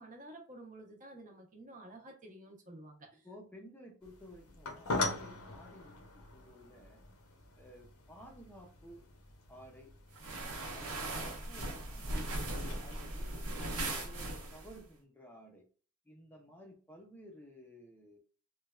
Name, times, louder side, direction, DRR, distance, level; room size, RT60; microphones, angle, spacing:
voice 1, 0.0-3.3, right 1 dB, 35° right, 2 dB, 0.7 m, -51 dB
voice 2, 3.2-6.0 6.3-7.0 7.6-9.1 9.5-9.9 10.7-12.4 12.8-13.3 14.0-15.7 16.1-18.2, equal, 10° left, 0 dB, 0.5 m, -54 dB
sound 1, 4.0-13.0, left 3 dB, 80° left, 0.7 m, -43 dB
sound 2, 10.1-14.8, right 1 dB, 75° right, 0.8 m, -39 dB
3.1 x 2.2 x 2.2 m, 0.40 s
head